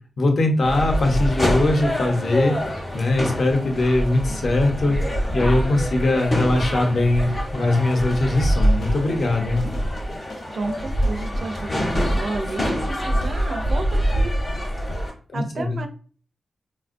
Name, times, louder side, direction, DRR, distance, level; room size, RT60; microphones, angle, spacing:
voice 1, 0.2-2.5 2.9-5.0 5.3-9.6 15.3-15.8, left 2 dB, 55° left, 2 dB, 0.7 m, -21 dB
sound 1, 0.6-15.1, equal, 20° left, 0.7 m, -25 dB
sound 2, 7.7-13.5, left 1 dB, 85° left, 0.9 m, -42 dB
voice 2, 10.1-14.4 15.3-15.9, right 3 dB, 50° right, 6 dB, 0.4 m, -32 dB
4.2 x 2.2 x 2.5 m, 0.41 s
wide cardioid pair, 160°, 0 cm